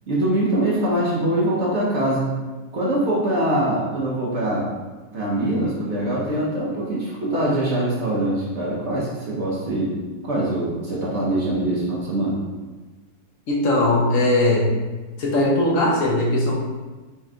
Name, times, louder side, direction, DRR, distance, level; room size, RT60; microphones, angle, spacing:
voice 1, 0.1-2.4 2.7-4.7 5.1-10.0 10.2-12.4, right 1 dB, 50° right, -6 dB, 1.0 m, -23 dB
voice 2, 13.5-14.7 15.2-16.6, left 1 dB, 55° left, -3 dB, 1.1 m, -19 dB
4.3 x 3.1 x 3.6 m, 1.2 s
omnidirectional pair, 2.0 m